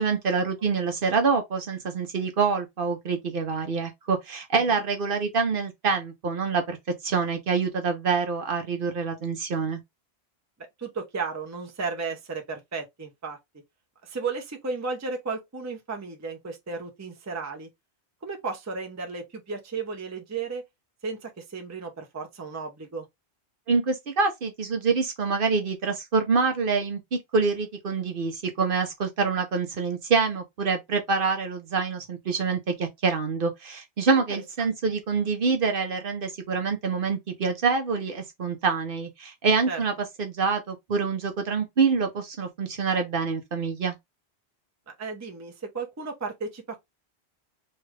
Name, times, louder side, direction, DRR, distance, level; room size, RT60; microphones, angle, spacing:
voice 1, 0.0-6.8 7.0-9.8 23.7-39.9 40.2-44.0, right 4 dB, 60° right, 0.9 m, -26 dB
voice 2, 10.8-13.4 14.0-17.7 18.2-20.6 21.0-23.1 34.1-34.2 34.6-34.7 39.7-39.8 45.0-46.8, right 4 dB, 20° right, 0.6 m, -34 dB
3.2 x 2.4 x 3.2 m
omnidirectional pair, 1.1 m